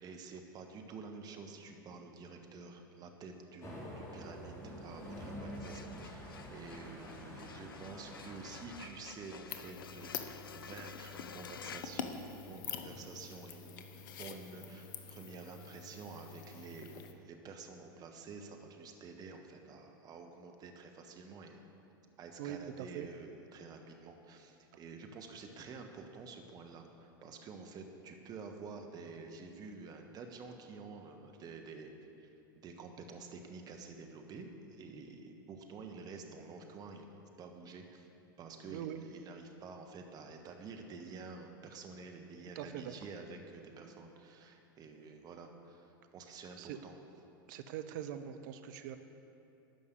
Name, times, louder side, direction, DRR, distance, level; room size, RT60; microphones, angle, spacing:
voice 1, 0.0-13.8 14.2-21.7 22.2-31.9 32.2-32.3 32.6-37.1 37.4-38.1 38.4-47.0, right 4 dB, 35° right, 4 dB, 1.2 m, -49 dB
sound 1, 3.6-8.8, equal, 25° left, 3.2 m, -47 dB
sound 2, 5.4-12.8, left 7 dB, 85° left, 0.4 m, -52 dB
Swallowing cereals, 9.5-17.1, left 7 dB, 65° left, 0.8 m, -46 dB
voice 2, 22.4-23.1 38.7-39.0 42.5-42.9 46.6-46.8 47.5-49.0, right 10 dB, 60° right, 9 dB, 0.7 m, -42 dB
13.0 x 5.4 x 8.1 m, 2.7 s
hypercardioid pair, 90°, 11 cm